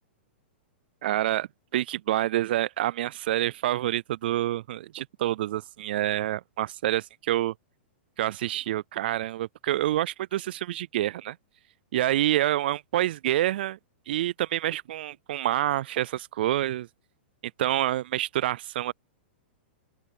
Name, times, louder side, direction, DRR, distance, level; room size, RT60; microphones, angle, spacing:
voice 1, 1.0-7.5 8.2-11.4 11.9-13.8 14.1-16.9 17.6-18.9, right 14 dB, 65° right, 0.3 m, -27 dB
open air
hypercardioid pair, 145°, 6 cm